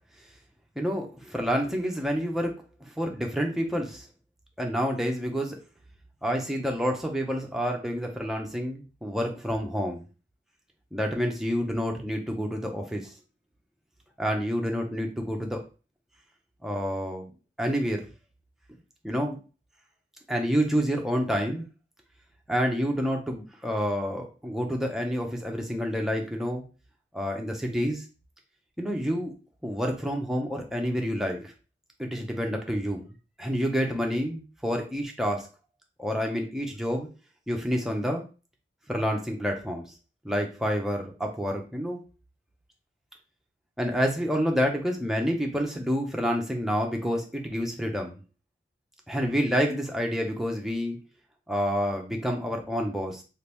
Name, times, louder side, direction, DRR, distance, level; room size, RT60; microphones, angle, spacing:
voice 1, 0.8-2.5 3.0-4.1 4.6-5.6 6.2-10.0 10.9-13.1 14.2-15.6 16.6-17.3 17.6-18.0 19.0-19.4 20.3-21.7 22.5-26.6 27.1-28.0 28.8-29.3 29.6-31.5 32.0-33.1 33.4-35.5 36.0-37.1 37.5-38.2 38.9-39.8 40.2-42.0 43.8-48.2 49.1-51.0 51.5-53.2, equal, ahead, 1 dB, 0.5 m, -28 dB
2.8 x 2.5 x 3.3 m, 0.33 s
head